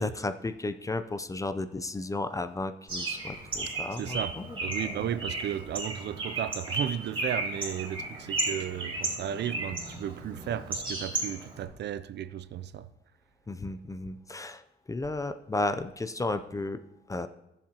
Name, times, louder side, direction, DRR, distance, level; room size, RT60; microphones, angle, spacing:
voice 1, 0.0-4.6 13.5-16.8 17.1-17.3, left 2 dB, 15° left, 0.5 m, -33 dB
Bird, 2.9-11.6, right 2 dB, 25° right, 3.4 m, -34 dB
voice 2, 4.0-4.4 4.6-12.9, right 10 dB, 60° right, 0.5 m, -34 dB
16.5 x 7.4 x 2.9 m
cardioid pair, 90°, 20 cm